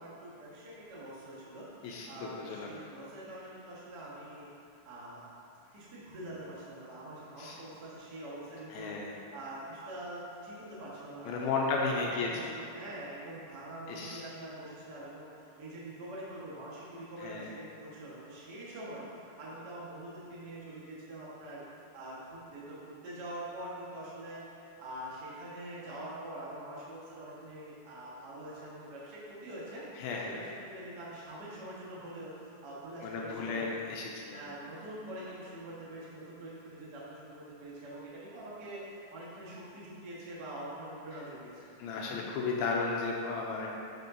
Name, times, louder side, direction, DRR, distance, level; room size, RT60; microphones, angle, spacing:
voice 1, 0.0-5.3 5.7-8.9 9.3-11.6 12.0-19.0 19.4-21.6 21.9-24.4 24.8-33.7 34.3-41.7, right 1 dB, 85° right, -8 dB, 0.9 m, -45 dB
voice 2, 1.8-2.9 7.4-7.6 8.7-9.1 11.3-12.6 13.9-14.2 17.2-17.5 30.0-30.4 33.0-34.4 41.8-43.7, left 4 dB, 80° left, -2 dB, 2.3 m, -34 dB
12.0 x 5.3 x 2.7 m, 2.6 s
omnidirectional pair, 4.6 m